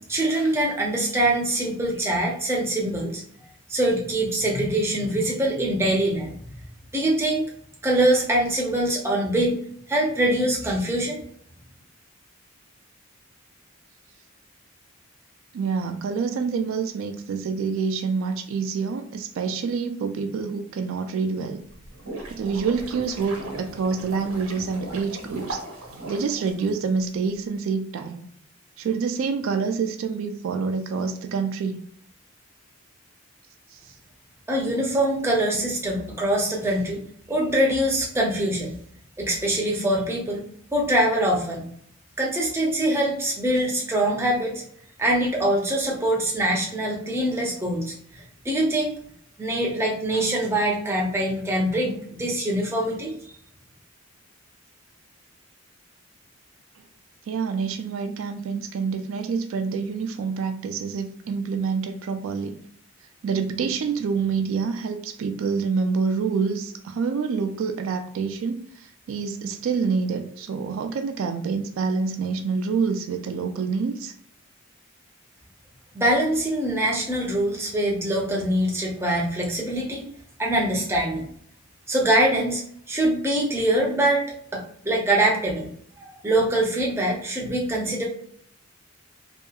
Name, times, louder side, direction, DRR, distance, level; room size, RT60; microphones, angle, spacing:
voice 1, 0.1-3.2 3.7-6.3 6.9-7.5 7.8-9.6 9.9-11.2 34.5-37.0 37.3-38.8 39.2-40.4 40.7-41.7 42.2-44.6 45.0-48.9 49.4-53.4 75.9-80.0 80.4-81.3 81.9-82.6 82.9-84.2 84.5-85.7 86.0-88.0, right 1 dB, 10° right, -2 dB, 0.5 m, -23 dB
voice 2, 15.5-21.6 22.3-25.6 26.1-28.2 28.8-31.8 33.7-33.8 57.3-62.6 63.2-74.1, right 5 dB, 70° right, 6 dB, 0.3 m, -27 dB
sound 1, 21.7-27.1, right 2 dB, 85° right, 0.9 m, -37 dB
2.7 x 2.3 x 2.3 m, 0.64 s
head